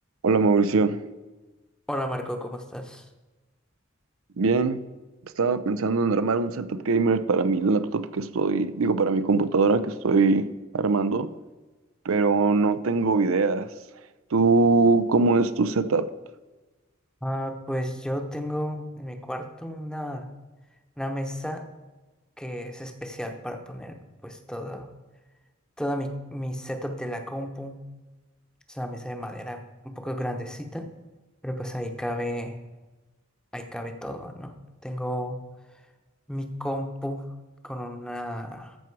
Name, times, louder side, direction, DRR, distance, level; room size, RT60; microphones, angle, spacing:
voice 1, 0.2-1.0 4.4-4.8 5.4-10.4 10.7-11.3 12.1-13.7 14.3-16.1, right 4 dB, 80° right, 12 dB, 0.6 m, -22 dB
voice 2, 1.9-3.1 17.2-20.3 21.0-21.6 22.4-24.0 24.2-24.9 25.8-27.7 28.7-30.9 31.4-32.6 33.5-34.5 34.8-35.4 36.3-37.3 37.6-38.8, equal, 5° left, 5 dB, 0.9 m, -33 dB
14.0 x 6.0 x 4.7 m, 1.2 s
head